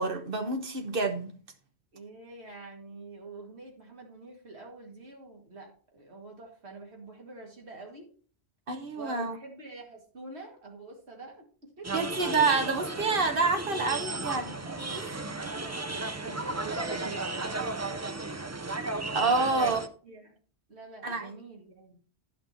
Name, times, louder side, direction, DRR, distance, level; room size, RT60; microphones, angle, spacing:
voice 1, 0.0-1.3 8.7-9.4 11.9-14.7 14.9-15.1 19.1-19.8 21.0-21.3, right 3 dB, 55° right, 1.4 m, -28 dB
voice 2, 1.9-8.1 9.0-11.9 14.6-15.8 16.2-18.0 19.3-20.3 20.7-22.0, right 2 dB, 80° right, 2.4 m, -46 dB
sound 1, 11.8-19.9, right 3 dB, 20° right, 0.4 m, -34 dB
10.5 x 5.9 x 4.3 m
omnidirectional pair, 1.1 m